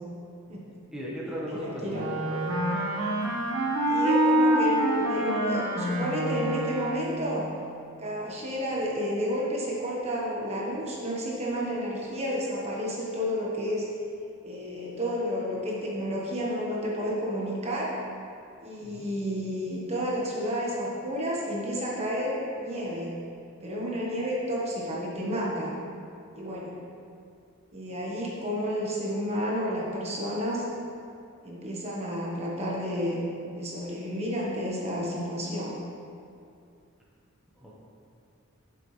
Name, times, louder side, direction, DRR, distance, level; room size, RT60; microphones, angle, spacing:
voice 1, 0.9-2.6 18.8-19.1 37.5-37.8, equal, 5° right, -6 dB, 1.2 m, -37 dB
voice 2, 1.5-2.1 3.9-7.5 8.0-13.9 14.4-17.9 18.6-23.1 23.6-25.7 26.3-26.7 27.7-30.6 31.4-33.2 33.5-35.8, equal, 30° right, -4 dB, 1.3 m, -31 dB
Wind instrument woodwind instrument, 1.9-7.3, right 1 dB, 85° right, 1.4 m, -26 dB
10.5 x 7.0 x 3.3 m, 2.5 s
head